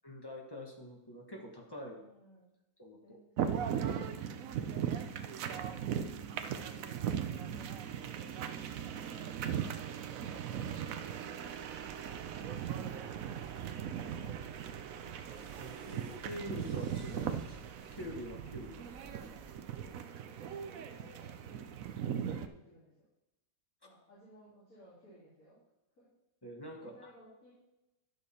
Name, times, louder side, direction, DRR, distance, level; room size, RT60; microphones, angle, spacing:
voice 1, 0.0-2.0 2.8-3.2 15.6-17.6 17.9-18.9 26.4-27.1, equal, 20° left, 1 dB, 1.2 m, -45 dB
voice 2, 1.9-2.5 3.0-3.9 4.3-4.8 5.5-9.0 13.0-15.3 18.8-19.3 19.6-22.0 22.4-22.9 23.8-25.6 26.0-26.1 26.8-27.5, right 1 dB, 80° left, -11 dB, 3.5 m, -60 dB
sound 1, 3.4-22.5, right 8 dB, 75° right, 1.0 m, -38 dB
sound 2, 11.4-19.9, right 2 dB, 30° right, 2.7 m, -57 dB
11.5 x 6.6 x 4.3 m, 0.94 s
omnidirectional pair, 1.5 m